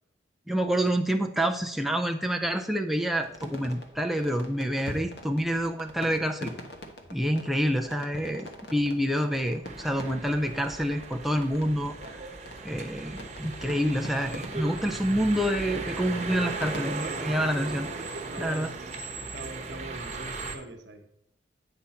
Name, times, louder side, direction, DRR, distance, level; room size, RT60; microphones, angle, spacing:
voice 1, 0.5-6.5 7.1-12.0 12.6-17.9 18.4-18.7, equal, ahead, 3 dB, 0.3 m, -27 dB
sound 1, 3.2-16.9, left 1 dB, 60° left, 1.1 m, -44 dB
sound 2, 9.6-20.5, right 3 dB, 35° right, 1.0 m, -37 dB
voice 2, 18.1-18.9 19.3-21.1, right 1 dB, 70° right, 5 dB, 1.0 m, -42 dB
8.9 x 5.8 x 4.3 m, 0.78 s
head